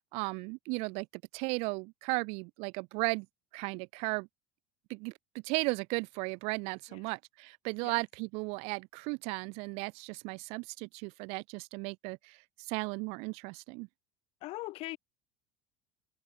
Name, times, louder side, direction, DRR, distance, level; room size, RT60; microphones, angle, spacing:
voice 1, 0.1-1.1 1.3-3.3 3.5-4.3 4.9-5.1 5.4-12.4 12.7-13.9, right 30 dB, 70° right, 0.9 m, -35 dB
voice 2, 14.4-15.0, left 19 dB, 60° left, 1.9 m, -40 dB
supercardioid pair, 120°, 11 cm